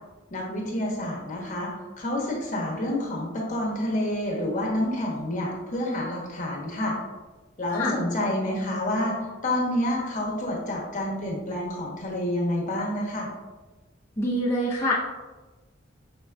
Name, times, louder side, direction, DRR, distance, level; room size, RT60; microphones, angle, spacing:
voice 1, 0.3-1.7 2.0-6.9 7.6-9.2 9.4-13.3, left 1 dB, 40° left, -2 dB, 1.0 m, -28 dB
voice 2, 14.2-14.9, left 1 dB, 15° left, -9 dB, 0.6 m, -25 dB
5.3 x 3.7 x 2.3 m, 1.2 s
head